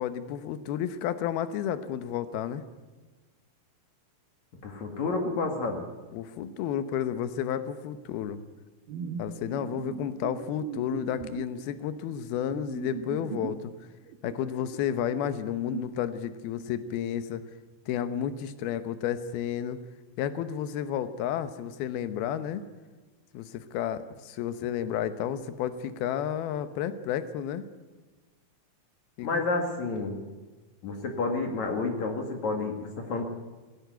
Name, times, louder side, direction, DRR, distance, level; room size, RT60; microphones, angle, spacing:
voice 1, 0.0-2.6 6.1-8.4 9.2-13.7 14.2-17.4 17.9-19.8 20.2-22.6 23.3-27.6 29.2-29.4, left 9 dB, 85° left, 12 dB, 2.9 m, -31 dB
voice 2, 4.6-5.8 29.2-30.2 30.8-33.2, left 3 dB, 55° left, 4 dB, 3.1 m, -30 dB
sound 1, 8.9-13.7 14.1-15.8, right 9 dB, 80° right, 2.7 m, -40 dB
17.5 x 16.0 x 9.2 m, 1.3 s
omnidirectional pair, 4.3 m